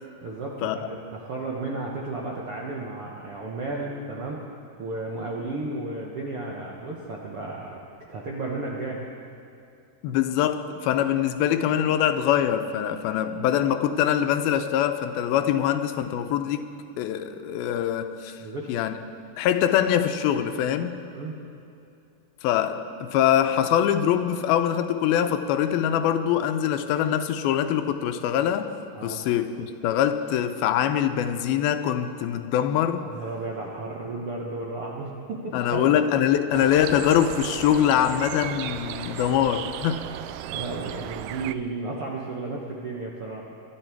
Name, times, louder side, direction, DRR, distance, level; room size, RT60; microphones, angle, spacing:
voice 1, 0.2-4.4 4.8-7.8 8.1-9.0 18.4-18.7 21.1-21.3 28.9-29.2 33.0-35.9 40.5-43.5, right 2 dB, 70° right, -3 dB, 1.3 m, -33 dB
voice 2, 10.0-16.7 17.0-18.4 18.7-18.9 19.4-21.0 22.4-28.7 29.0-33.1 35.5-40.0, left 10 dB, 85° left, 9 dB, 2.5 m, -23 dB
sound 1, 36.5-41.5, right 12 dB, 85° right, 1.9 m, -35 dB
23.0 x 12.0 x 4.6 m, 2.6 s
omnidirectional pair, 4.3 m